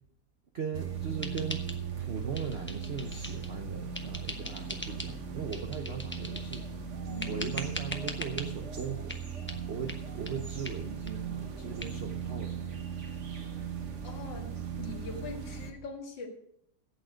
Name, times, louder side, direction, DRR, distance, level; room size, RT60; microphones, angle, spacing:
voice 1, 0.5-1.7 2.0-6.7 7.3-9.2 9.7-12.7, right 6 dB, 75° right, 4 dB, 0.5 m, -38 dB
sound 1, 0.7-15.7, right 7 dB, 40° right, 1.2 m, -38 dB
sound 2, 1.2-2.1 2.3-3.6 3.9-5.2 5.5-6.7 7.2-8.5 9.1-9.2 9.5-9.6 9.9-10.0 10.3-10.4 10.6-10.8 11.1-11.2 11.4-11.5 11.8-11.9, left 1 dB, 15° left, 0.3 m, -41 dB
voice 2, 7.0-7.5 13.4-13.5 14.0-16.3, left 3 dB, 60° left, 1 dB, 2.4 m, -42 dB
13.0 x 8.6 x 5.1 m, 0.70 s
omnidirectional pair, 2.3 m